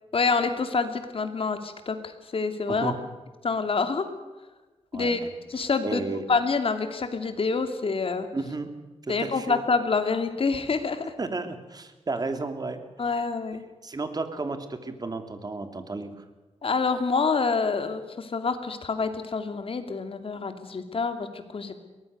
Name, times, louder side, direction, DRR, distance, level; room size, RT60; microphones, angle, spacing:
voice 1, 0.1-2.0 2.3-2.9 3.4-4.1 4.9-5.2 5.5-8.3 9.1-11.1 13.0-13.6 16.6-21.3 21.5-21.8, left 4 dB, 55° left, 8 dB, 2.7 m, -27 dB
voice 2, 2.7-3.0 4.9-5.3 5.8-6.2 8.3-8.7 9.0-9.6 11.2-12.8 13.2-13.3 13.8-16.2, right 3 dB, 35° right, 8 dB, 2.7 m, -33 dB
23.0 x 19.0 x 6.7 m, 1.2 s
wide cardioid pair, 110°, 12 cm